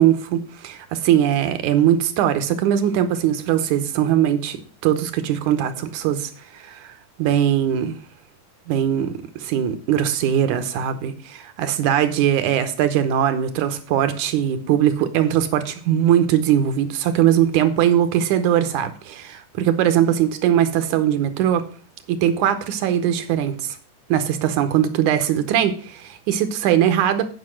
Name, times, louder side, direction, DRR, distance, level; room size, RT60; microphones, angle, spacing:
voice 1, 0.0-4.6 4.8-6.3 6.6-6.9 7.2-8.0 8.7-21.7 22.1-23.8 24.1-27.3, right 10 dB, 80° right, 10 dB, 2.3 m, -20 dB
9.6 x 5.3 x 6.3 m, 0.42 s
omnidirectional pair, 3.5 m